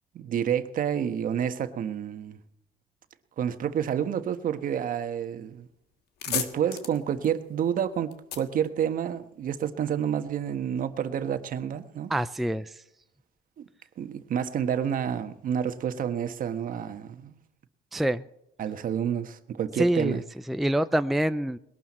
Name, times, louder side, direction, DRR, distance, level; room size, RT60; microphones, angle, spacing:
voice 1, 0.1-2.4 3.4-5.6 6.3-12.1 13.6-13.7 14.0-17.4 18.6-20.2, right 9 dB, 55° right, 1.3 m, -29 dB
sound 1, 5.5-5.6 5.9-9.5, left 10 dB, 70° left, 1.6 m, -36 dB
voice 2, 12.1-12.7 17.9-18.2 19.8-20.2 20.5-21.6, right 1 dB, ahead, 0.4 m, -25 dB
21.0 x 12.0 x 4.3 m
cardioid pair, 110°, 17 cm